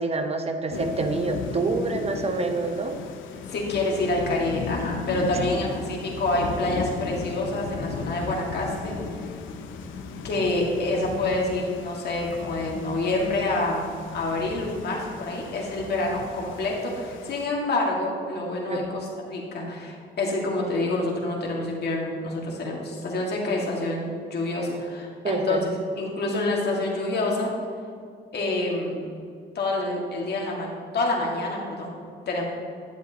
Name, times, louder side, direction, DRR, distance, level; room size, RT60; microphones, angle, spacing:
voice 1, 0.0-3.0 5.5-5.6 18.7-18.9 25.2-25.6, right 3 dB, 30° right, 6 dB, 0.9 m, -27 dB
Thunder / Rain, 0.7-17.5, left 5 dB, 80° left, 0.7 m, -36 dB
voice 2, 3.5-9.0 10.2-25.7 26.0-27.5 28.3-29.0 29.6-30.7 30.9-32.0 32.3-32.4, left 2 dB, 55° left, -2 dB, 2.0 m, -27 dB
10.5 x 7.8 x 2.9 m, 2.2 s
cardioid pair, 90°, 20 cm